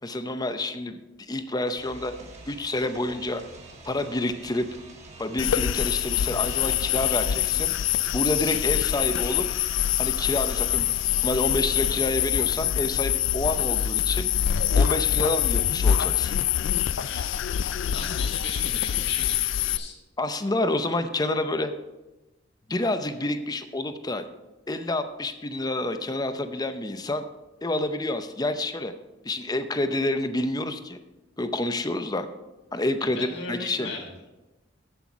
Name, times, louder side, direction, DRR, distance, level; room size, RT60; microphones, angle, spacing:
voice 1, 0.0-1.0 1.3-2.1 2.5-3.4 3.9-4.7 5.2-7.7 8.1-9.5 10.0-10.9 11.2-14.3 14.7-16.3 20.2-21.7 22.7-24.2 24.7-27.3 27.6-28.9 29.2-31.0 31.4-32.3 32.7-33.9, left 2 dB, 20° left, 9 dB, 0.6 m, -28 dB
sound 1, 1.8-12.6, right 2 dB, 35° right, 1.6 m, -46 dB
sound 2, 5.4-19.8, left 10 dB, 80° left, 0.4 m, -25 dB
voice 2, 17.0-17.4 17.9-19.9 33.1-34.0, left 3 dB, 65° left, 0 dB, 2.1 m, -37 dB
7.9 x 7.9 x 5.9 m, 1.1 s
head